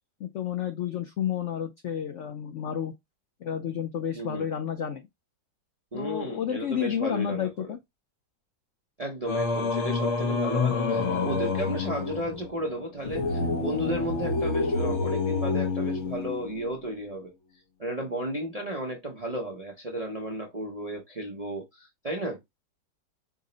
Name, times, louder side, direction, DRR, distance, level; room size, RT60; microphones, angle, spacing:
voice 1, 0.2-2.9 3.4-5.1 5.9-7.8, left 9 dB, 85° left, 0.6 m, -31 dB
voice 2, 4.1-4.5 5.9-7.7 9.0-17.3 17.8-22.4, right 1 dB, 45° right, 0.4 m, -34 dB
Singing, 9.3-16.6, left 4 dB, 55° left, 0.8 m, -28 dB
5.0 x 2.0 x 3.8 m
omnidirectional pair, 1.9 m